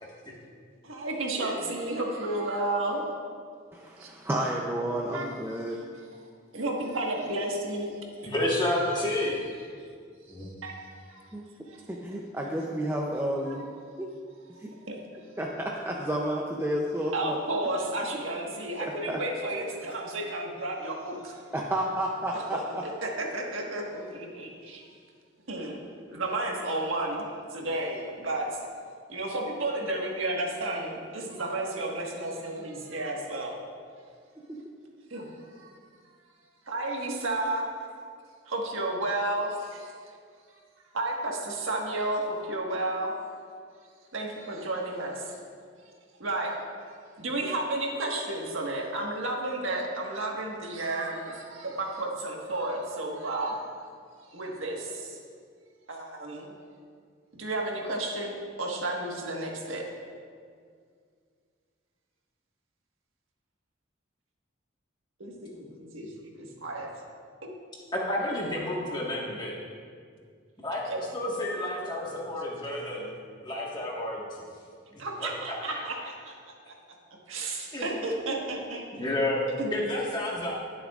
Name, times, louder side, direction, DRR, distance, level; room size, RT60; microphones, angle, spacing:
voice 1, 0.8-3.0 4.0-4.1 5.1-5.3 5.9-6.0 6.5-8.3 9.2-9.3 10.3-11.3 11.6-11.8 13.4-13.6 14.9-15.0 17.1-21.4 22.8-24.8 25.5-25.8 26.1-27.2 27.5-28.7 29.1-33.6 35.1-35.8 36.7-37.7 38.5-39.9 40.9-43.1 44.1-45.4 45.8-45.9 46.2-46.6 47.2-53.6 54.3-55.2 55.9-56.5 57.4-59.8 65.2-66.9 70.7-71.0 75.0-76.3 76.7-76.8 77.3-78.8 79.6-79.7, right 2 dB, 90° right, -1 dB, 1.5 m, -32 dB
voice 2, 3.7-5.8 11.3-11.4 11.9-13.7 14.0-14.1 14.6-14.7 15.4-17.4 18.8-19.2 21.5-22.8 25.6-25.7 26.1-26.2 34.5-34.6, right 1 dB, 10° right, -2 dB, 0.5 m, -31 dB
voice 3, 8.2-9.4 10.3-10.5 67.9-69.5 70.6-73.1 73.4-74.4 74.9-75.3 75.7-75.8 77.7-77.9 78.9-79.4 79.7-80.5, left 1 dB, 20° left, -4 dB, 1.5 m, -30 dB
20.5 x 7.0 x 2.4 m, 2.1 s
head